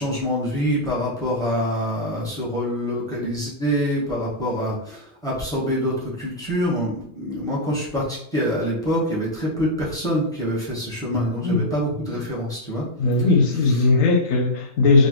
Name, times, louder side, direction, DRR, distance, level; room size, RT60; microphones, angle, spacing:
voice 1, 0.0-12.8, equal, 5° left, -5 dB, 1.1 m, -25 dB
voice 2, 11.1-11.7 13.0-15.1, left 3 dB, 80° left, 3 dB, 1.1 m, -19 dB
4.3 x 2.2 x 3.1 m, 0.66 s
omnidirectional pair, 1.4 m